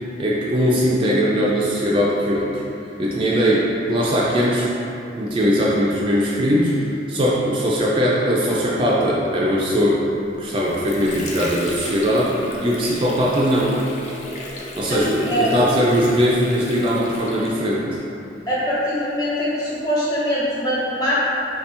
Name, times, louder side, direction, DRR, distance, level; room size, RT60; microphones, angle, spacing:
voice 1, 0.2-2.6 3.0-4.7 5.2-10.0 10.4-13.8 14.8-18.0, equal, 30° right, -5 dB, 0.3 m, -20 dB
Water / Sink (filling or washing), 10.3-18.0, left 1 dB, 40° left, 0.4 m, -35 dB
voice 2, 14.8-15.6 18.5-21.1, equal, 20° left, -8 dB, 0.8 m, -23 dB
3.2 x 2.9 x 3.3 m, 2.7 s
head